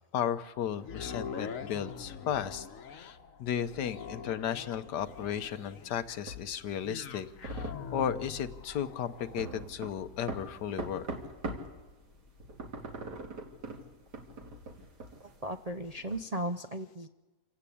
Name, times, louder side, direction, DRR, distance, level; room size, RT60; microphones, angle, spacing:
voice 1, 0.1-2.7 2.9-11.1, left 9 dB, 80° left, 11 dB, 1.5 m, -35 dB
sound 1, 0.8-15.0 15.5-15.6, left 6 dB, 55° left, 1.4 m, -45 dB
sound 2, 5.1-11.8 12.1-16.2, right 2 dB, 70° right, 2.9 m, -42 dB
voice 2, 15.4-17.1, right 1 dB, 45° right, 5 dB, 0.5 m, -36 dB
27.0 x 16.0 x 8.6 m, 1.2 s
omnidirectional pair, 1.8 m